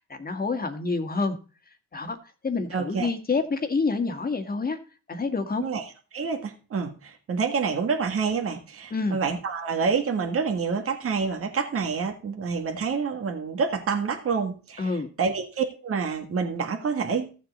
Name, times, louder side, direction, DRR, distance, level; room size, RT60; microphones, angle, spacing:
voice 1, 0.0-1.4 1.9-2.2 2.4-4.8 5.1-5.7 8.9-9.2 14.8-15.1, left 4 dB, 30° left, 6 dB, 1.8 m, -27 dB
voice 2, 2.7-3.1 5.6-5.8 6.1-17.3, right 5 dB, 50° right, 4 dB, 1.8 m, -28 dB
14.0 x 7.2 x 4.0 m, 0.35 s
cardioid pair, 90°, 30 cm